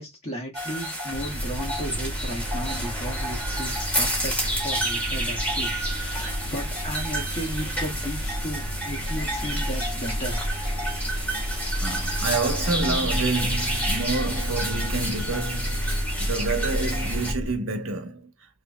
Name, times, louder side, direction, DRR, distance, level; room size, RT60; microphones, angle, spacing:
voice 1, 0.0-10.5, equal, 30° left, 1.5 m, -35 dB
sound 1, 0.5-17.3, right 1 dB, 10° left, 2.1 m, -30 dB
sound 2, 1.1-17.5, equal, 50° left, 1.3 m, -31 dB
voice 2, 11.8-18.3, right 3 dB, 70° right, 1.0 m, -28 dB
6.1 x 3.3 x 2.2 m
head